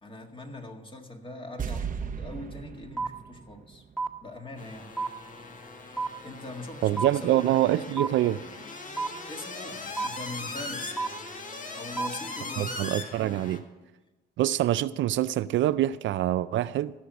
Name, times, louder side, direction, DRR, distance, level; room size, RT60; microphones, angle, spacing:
voice 1, 0.0-3.8 4.2-5.0 6.2-7.4 8.9-11.2 11.7-12.9, left 2 dB, 25° left, 1.9 m, -42 dB
sound 1, 1.6-4.8 5.0-5.1, right 7 dB, 40° right, 0.8 m, -37 dB
sound 2, 3.0-3.1 4.0-4.1 5.0-5.1 6.0-6.1 7.0-7.1 8.0-8.1 9.0-9.1 10.0-10.1 11.0-11.1 12.0-12.1, right 4 dB, 5° left, 1.3 m, -28 dB
sound 3, 4.6-13.6, left 3 dB, 40° left, 1.7 m, -40 dB
voice 2, 6.8-8.4 12.6-13.6 14.4-16.9, right 13 dB, 70° right, 0.4 m, -25 dB
15.0 x 6.3 x 8.0 m
cardioid pair, 90°, 20 cm